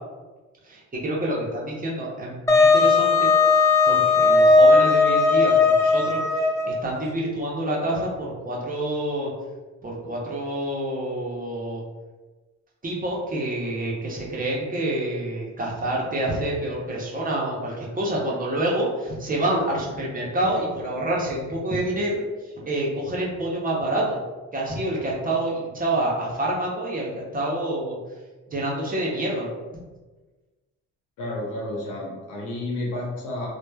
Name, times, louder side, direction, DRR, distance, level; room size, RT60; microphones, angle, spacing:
voice 1, 0.6-9.3 9.8-11.8 12.8-22.2 22.6-24.2 24.5-28.0 28.5-29.5, right 1 dB, 30° right, -4 dB, 0.8 m, -27 dB
Wind instrument woodwind instrument, 2.5-6.8, left 3 dB, 10° left, 0.4 m, -17 dB
voice 2, 31.2-33.5, left 1 dB, 90° left, -3 dB, 0.8 m, -31 dB
3.0 x 2.2 x 2.2 m, 1.2 s
cardioid pair, 90°, 30 cm